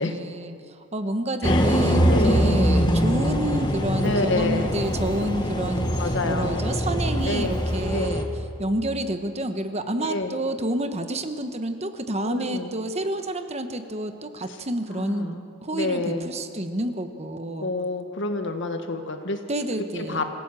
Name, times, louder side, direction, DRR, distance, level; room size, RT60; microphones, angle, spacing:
voice 1, 0.0-8.3 8.6-15.4 15.6-17.7 19.5-20.2, right 1 dB, 30° right, 8 dB, 1.2 m, -29 dB
sound 1, 1.4-8.2, equal, 20° left, 1.7 m, -23 dB
voice 2, 2.1-2.4 4.0-4.7 6.0-6.6 7.2-7.6 7.9-8.1 10.0-10.3 12.2-12.7 14.9-15.4 15.7-16.3 17.6-19.4 19.9-20.2, left 2 dB, 60° left, 5 dB, 1.9 m, -28 dB
26.0 x 16.0 x 7.6 m, 2.4 s
head